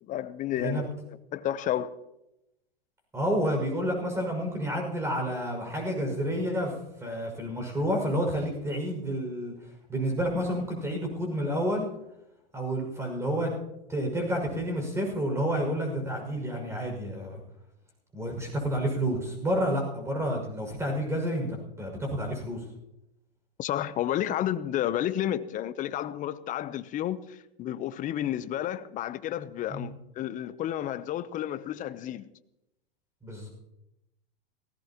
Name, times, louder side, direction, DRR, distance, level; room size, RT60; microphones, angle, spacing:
voice 1, 0.0-1.9 23.6-32.2, left 11 dB, 25° left, 0.8 m, -31 dB
voice 2, 3.1-9.5 9.9-11.9 12.5-13.5 13.9-17.4 18.1-22.6 29.7-29.9 33.2-33.5, equal, 10° right, 5.9 m, -30 dB
18.5 x 17.5 x 3.0 m
hypercardioid pair, 125°, 31 cm